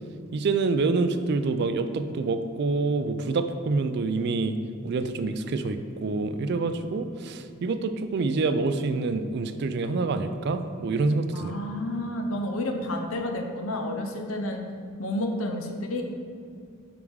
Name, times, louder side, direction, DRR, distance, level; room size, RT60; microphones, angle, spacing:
voice 1, 0.3-4.6 4.8-11.6, right 3 dB, 55° right, 10 dB, 0.4 m, -27 dB
voice 2, 11.3-14.6 15.0-16.0, left 1 dB, 80° left, 4 dB, 0.8 m, -30 dB
5.4 x 4.8 x 4.7 m, 2.4 s
head